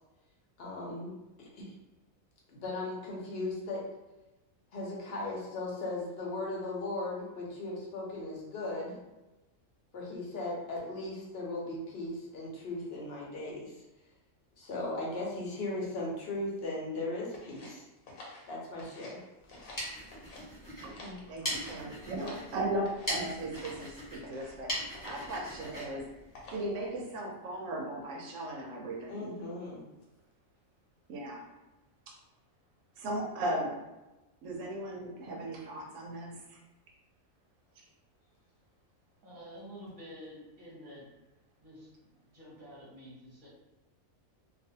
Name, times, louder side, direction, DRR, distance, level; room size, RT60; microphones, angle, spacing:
voice 1, 0.6-1.7 2.5-3.8 4.7-9.0 9.9-13.7 14.6-17.8 18.5-19.2 19.5-19.7 21.0-21.2 29.1-29.8, left 2 dB, 55° left, -3 dB, 0.9 m, -37 dB
sound 1, 17.3-19.2 19.5-20.4 20.8-22.5 22.8-23.2 23.6-23.9 24.2-24.6 24.9-25.3 25.6-26.0 26.3-26.8, left 2 dB, 90° left, 1.1 m, -50 dB
sound 2, 19.4-27.0, equal, 15° left, 0.8 m, -41 dB
voice 2, 21.3-26.1 26.5-29.3 31.1-31.4 33.0-33.7 34.4-36.6 37.8-37.9, right 1 dB, 75° right, 0 dB, 1.0 m, -37 dB
voice 3, 39.2-41.1 41.6-43.5, equal, 40° right, -8 dB, 0.9 m, -49 dB
2.4 x 2.4 x 2.7 m, 1.0 s
omnidirectional pair, 1.4 m